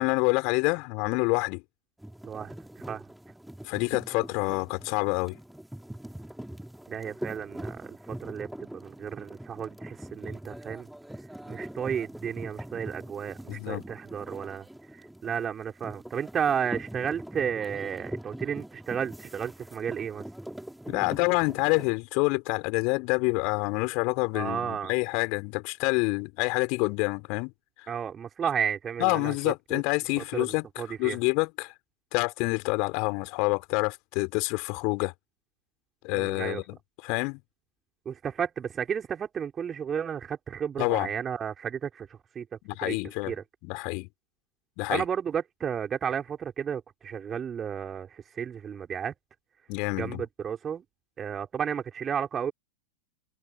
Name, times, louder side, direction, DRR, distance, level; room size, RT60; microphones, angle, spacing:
voice 1, 0.0-1.6 3.6-5.4 13.5-13.8 20.9-27.5 27.8-27.9 29.0-31.7 32.1-35.1 36.0-36.8 37.0-37.4 40.8-41.1 42.6-43.3 43.6-44.1 44.8-45.0 49.7-50.2, left 30 dB, 45° left, 4.2 m, -27 dB
sound 1, 2.0-21.9, right 1 dB, ahead, 3.8 m, -42 dB
voice 2, 2.2-3.0 6.9-10.9 11.5-14.7 14.9-20.2 24.3-24.9 27.9-29.8 30.2-31.2 36.1-36.6 38.1-42.5 42.8-42.9 43.3-43.4 44.9-49.1 49.9-50.8 51.2-52.5, right 8 dB, 20° right, 5.5 m, -33 dB
figure-of-eight pair, 90°, 0 cm